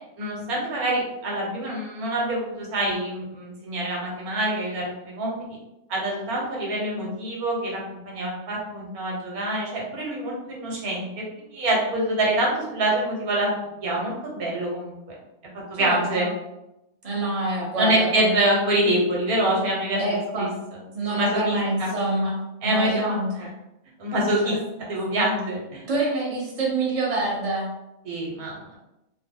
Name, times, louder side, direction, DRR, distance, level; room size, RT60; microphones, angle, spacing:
voice 1, 0.2-4.9 5.2-5.6 5.9-7.8 8.0-11.1 11.5-13.5 13.8-15.0 15.7-16.3 17.8-20.0 20.4-20.5 21.1-21.9 22.6-23.2 24.0-24.6 24.9-25.8 28.0-28.5, right 1 dB, 75° right, -3 dB, 1.4 m, -25 dB
voice 2, 15.7-16.3 17.0-18.3 20.0-20.6 20.9-22.4 22.6-23.5 24.4-24.6 25.9-27.7, right 2 dB, 30° right, -5 dB, 0.8 m, -26 dB
3.1 x 2.1 x 3.5 m, 0.91 s
omnidirectional pair, 1.6 m